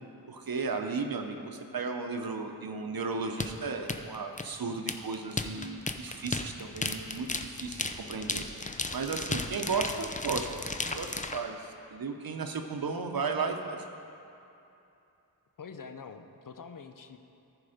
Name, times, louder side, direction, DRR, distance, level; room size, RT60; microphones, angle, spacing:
voice 1, 0.3-8.4 8.9-13.8, right 4 dB, 65° right, 5 dB, 0.8 m, -35 dB
sound 1, 3.4-11.4, left 3 dB, 20° left, 0.5 m, -34 dB
voice 2, 15.6-17.2, left 5 dB, 60° left, 8 dB, 0.6 m, -45 dB
14.5 x 4.9 x 5.0 m, 2.8 s
wide cardioid pair, 55°, 37 cm